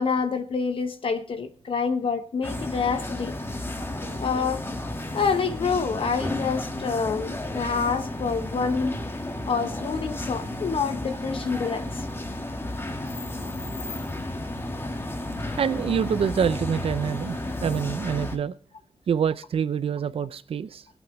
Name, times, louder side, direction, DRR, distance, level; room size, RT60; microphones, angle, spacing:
voice 1, 0.0-3.3 4.2-4.6 5.1-9.0 9.5-12.0, left 5 dB, 65° left, 1.0 m, -27 dB
sound 1, 2.4-18.4, left 1 dB, 25° left, 1.6 m, -32 dB
voice 2, 15.6-18.5 19.1-20.9, right 7 dB, 80° right, 0.6 m, -26 dB
23.5 x 8.4 x 3.1 m
wide cardioid pair, 140°, 10 cm